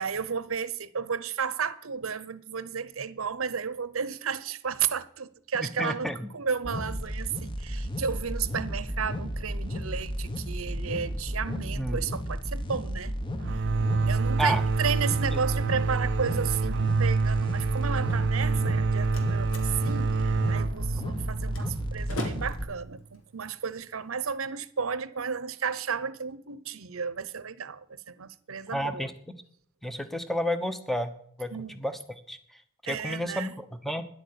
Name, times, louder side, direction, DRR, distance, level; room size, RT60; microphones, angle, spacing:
voice 1, 0.0-13.3 14.1-29.1 31.5-31.8 32.8-33.5, right 6 dB, 85° right, 0.9 m, -33 dB
voice 2, 5.6-6.3 11.7-12.0 14.4-14.6 15.3-15.4 28.7-29.1 29.8-31.1 31.4-32.0 32.3-32.4 32.8-34.0, equal, ahead, 1.0 m, -31 dB
sound 1, 6.6-22.6, equal, 25° left, 1.3 m, -33 dB
sound 2, 13.4-22.9, right 4 dB, 60° right, 0.5 m, -28 dB
Slam, 18.6-24.5, left 1 dB, 75° left, 2.4 m, -43 dB
10.5 x 8.3 x 8.5 m
head